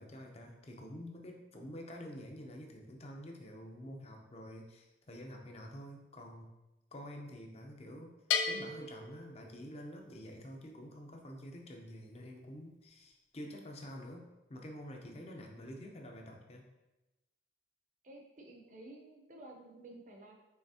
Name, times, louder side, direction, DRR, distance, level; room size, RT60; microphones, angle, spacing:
voice 1, 0.0-6.5 6.9-8.1 8.5-16.7, equal, 35° left, 2 dB, 0.6 m, -48 dB
Bell, 8.3-10.0, left 6 dB, 85° left, 0.4 m, -36 dB
voice 2, 18.0-20.3, right 2 dB, 45° right, 2 dB, 0.7 m, -52 dB
5.6 x 3.3 x 2.8 m, 1.0 s
head